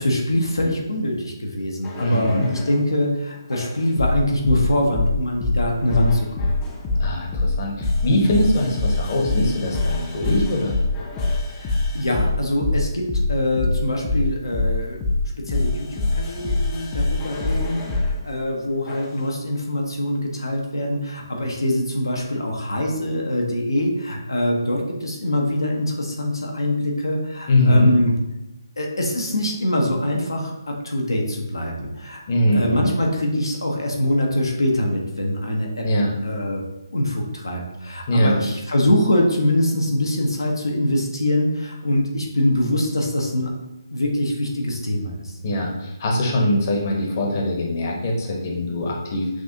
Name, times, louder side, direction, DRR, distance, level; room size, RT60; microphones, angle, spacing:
voice 1, 0.0-6.5 11.5-15.0 15.4-28.1 28.8-32.2 32.5-35.9 36.2-36.6 36.9-43.5 43.9-45.4, left 1 dB, 80° left, 0 dB, 0.8 m, -23 dB
sound 1, 1.8-2.8 3.5-18.2 18.9-19.2, left 2 dB, 20° left, 0.5 m, -24 dB
voice 2, 2.0-2.5 7.0-10.7 27.5-27.9 32.3-32.9 35.8-36.1 38.1-38.4 45.4-49.3, left 1 dB, 40° left, -1 dB, 0.9 m, -21 dB
6.0 x 2.4 x 2.7 m, 0.93 s
figure-of-eight pair, 145°, 2 cm